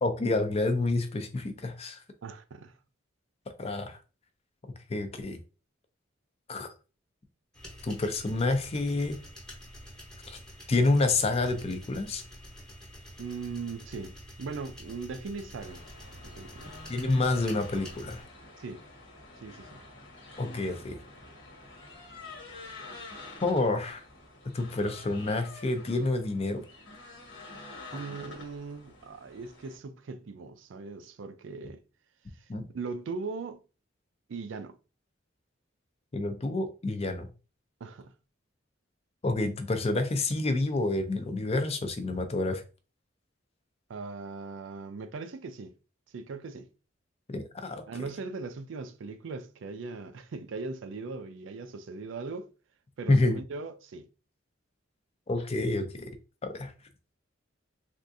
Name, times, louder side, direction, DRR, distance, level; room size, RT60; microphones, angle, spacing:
voice 1, 0.0-2.0 3.6-4.0 4.9-5.4 6.5-6.7 7.8-9.2 10.3-10.4 10.7-12.2 16.9-18.2 20.4-21.0 23.4-24.0 24.5-26.6 32.5-32.7 36.1-37.3 39.2-42.6 47.3-47.8 53.1-53.4 55.3-56.1 56.4-56.7, left 2 dB, 30° left, 0.5 m, -28 dB
voice 2, 2.2-2.8 13.2-15.8 16.1-16.8 18.6-18.8 19.4-19.8 27.9-31.8 32.3-32.4 32.7-33.6 34.3-34.8 37.8-38.1 43.9-45.7 46.1-46.7 47.9-52.5 53.0-54.1, right 4 dB, 70° right, 0.4 m, -39 dB
sound 1, 7.5-18.2, equal, 5° left, 0.9 m, -48 dB
sound 2, 15.6-29.8, left 2 dB, 75° left, 1.1 m, -48 dB
3.5 x 2.5 x 2.6 m
head